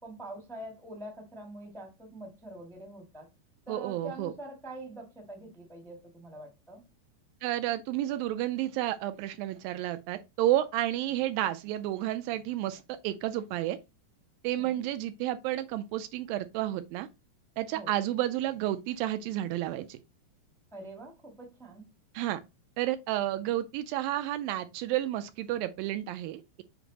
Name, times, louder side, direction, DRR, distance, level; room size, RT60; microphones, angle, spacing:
voice 1, 0.0-3.3 3.7-6.8 14.6-14.9 17.7-18.0 20.7-21.9, right 1 dB, 5° left, 0.6 m, -45 dB
voice 2, 3.7-4.3 7.4-13.8 14.4-17.1 17.6-20.0 22.1-22.4 22.8-26.6, right 14 dB, 80° right, 2.2 m, -31 dB
7.1 x 4.9 x 2.8 m
omnidirectional pair, 4.3 m